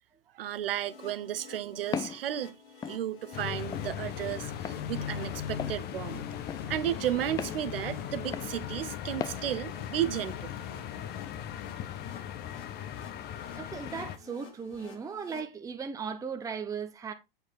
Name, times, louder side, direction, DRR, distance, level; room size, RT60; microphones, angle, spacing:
voice 1, 0.3-2.5 2.8-6.2 6.7-10.5, right 11 dB, 70° right, 0.8 m, -33 dB
sound 1, 0.6-15.4, left 5 dB, 65° left, 2.9 m, -51 dB
Walk footsteps, 1.9-2.2 2.8-3.0 3.7-3.9 4.6-4.8 5.6-5.8 6.5-6.6 7.4-7.6 8.3-8.5 9.2-9.4, left 8 dB, 15° left, 0.3 m, -35 dB
sound 2, 3.3-14.2, left 9 dB, 35° left, 0.9 m, -38 dB
voice 2, 13.5-17.1, right 6 dB, 10° right, 0.8 m, -37 dB
8.0 x 4.7 x 4.6 m
hypercardioid pair, 100°, 29 cm